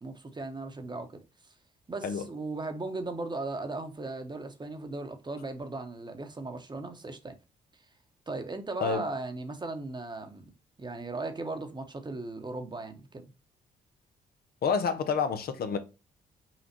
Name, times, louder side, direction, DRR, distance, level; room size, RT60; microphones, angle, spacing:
voice 1, 0.0-1.2 1.9-7.4 8.3-10.5 10.8-13.2, right 2 dB, 25° right, 1.0 m, -37 dB
voice 2, 14.6-15.8, left 6 dB, 60° left, 0.7 m, -28 dB
5.7 x 2.5 x 2.8 m
supercardioid pair, 60°, 18 cm